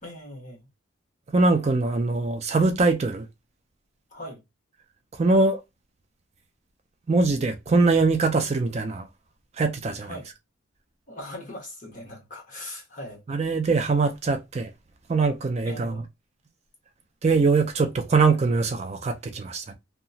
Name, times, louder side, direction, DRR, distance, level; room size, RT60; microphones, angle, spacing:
voice 1, 0.0-0.7 4.1-4.4 10.0-10.3 11.1-13.2 15.6-16.1, left 1 dB, 40° left, 1.3 m, -40 dB
voice 2, 1.3-3.3 5.1-5.6 7.1-9.1 9.6-10.2 13.3-14.7 15.1-16.0 17.2-19.7, right 3 dB, 30° right, 0.3 m, -22 dB
2.8 x 2.3 x 2.6 m
head